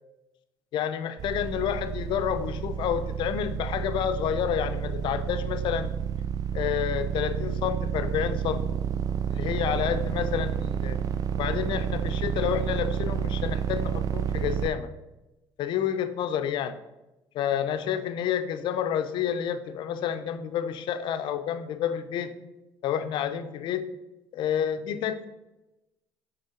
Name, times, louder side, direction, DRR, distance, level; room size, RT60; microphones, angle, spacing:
voice 1, 0.7-5.9 6.5-8.8 9.3-11.0 11.4-14.9 15.6-16.8 17.3-22.3 22.8-23.8 24.3-25.3, left 9 dB, 65° left, 10 dB, 0.6 m, -29 dB
sound 1, 1.2-14.7, right 8 dB, 45° right, 0.4 m, -30 dB
6.7 x 3.7 x 4.4 m, 0.97 s
supercardioid pair, 95°, 9 cm